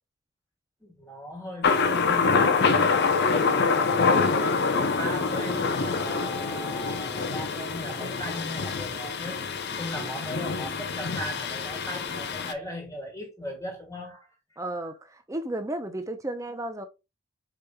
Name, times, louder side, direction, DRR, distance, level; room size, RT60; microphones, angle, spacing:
voice 1, 0.8-14.3 14.8-14.9, equal, 15° left, 1.5 m, -39 dB
Thunder, 1.6-12.5, left 4 dB, 55° left, 0.6 m, -25 dB
voice 2, 14.6-16.9, right 1 dB, 15° right, 0.6 m, -33 dB
5.0 x 4.6 x 2.3 m
head